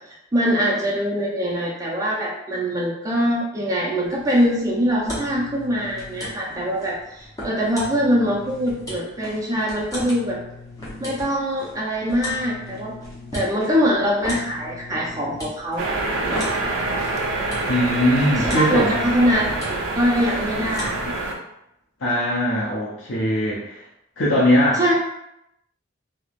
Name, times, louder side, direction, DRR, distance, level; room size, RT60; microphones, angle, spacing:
voice 1, 0.1-10.4 11.0-12.9 13.3-16.4 18.4-21.3 24.7-24.9, equal, 15° right, -4 dB, 0.3 m, -23 dB
sound 1, 4.0-21.1, left 1 dB, 15° left, 0.7 m, -36 dB
sound 2, 15.8-21.3, right 2 dB, 85° right, 0.5 m, -26 dB
voice 2, 17.6-19.0 22.0-23.8 24.2-24.9, equal, 65° left, -7 dB, 0.6 m, -20 dB
3.0 x 2.0 x 2.4 m, 0.81 s
head